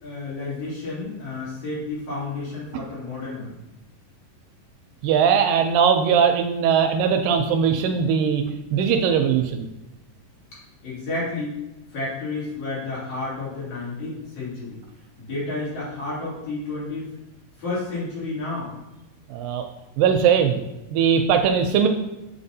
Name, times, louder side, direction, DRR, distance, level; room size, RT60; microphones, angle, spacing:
voice 1, 0.0-3.6 10.5-11.6 11.9-14.8 15.2-17.1 17.6-18.7, left 2 dB, 55° left, -8 dB, 3.9 m, -31 dB
voice 2, 5.0-8.4 8.7-9.7 19.3-19.7 20.0-20.6 20.9-21.9, right 7 dB, 80° right, 6 dB, 2.1 m, -20 dB
8.3 x 5.6 x 2.7 m, 0.97 s
omnidirectional pair, 4.1 m